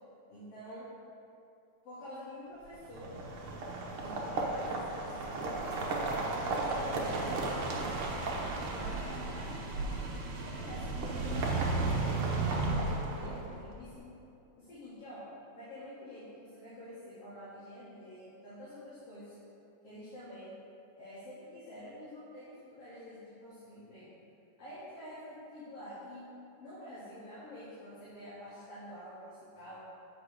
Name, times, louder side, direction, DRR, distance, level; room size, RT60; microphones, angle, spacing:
voice 1, 0.3-0.9 1.8-3.1 4.0-5.8 6.4-8.0 8.6-9.9 10.4-14.1 14.6-15.2 15.5-19.3 19.8-20.5 21.0-24.1 24.6-26.3 26.6-29.8, equal, 55° left, -11 dB, 2.8 m, -48 dB
sound 1, 2.8-13.7, right 3 dB, 60° right, 1.5 m, -34 dB
7.6 x 4.9 x 6.3 m, 2.7 s
omnidirectional pair, 3.4 m